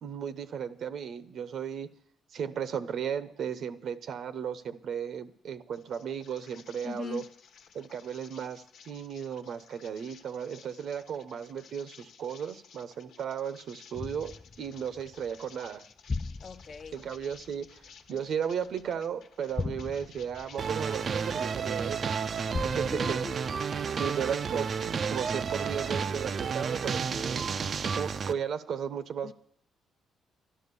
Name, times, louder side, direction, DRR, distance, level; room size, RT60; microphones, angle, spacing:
voice 1, 0.0-1.9 2.3-7.2 7.7-15.9 16.9-17.8 18.1-23.2 24.0-27.6 27.9-29.3, right 7 dB, 65° right, 0.9 m, -35 dB
sound 1, 5.7-21.5 21.9-23.2, left 6 dB, 75° left, 1.2 m, -56 dB
voice 2, 6.8-7.3 16.4-17.0 22.9-23.4 24.2-24.3 29.2-29.3, left 5 dB, 45° left, 0.9 m, -40 dB
sound 2, 13.9-19.0 19.5-21.9 22.5-24.5 25.0-25.1, left 3 dB, 25° left, 0.5 m, -40 dB
sound 3, 20.6-28.3, right 6 dB, 50° right, 0.5 m, -31 dB
11.5 x 11.5 x 6.9 m
cardioid pair, 90°, 0 cm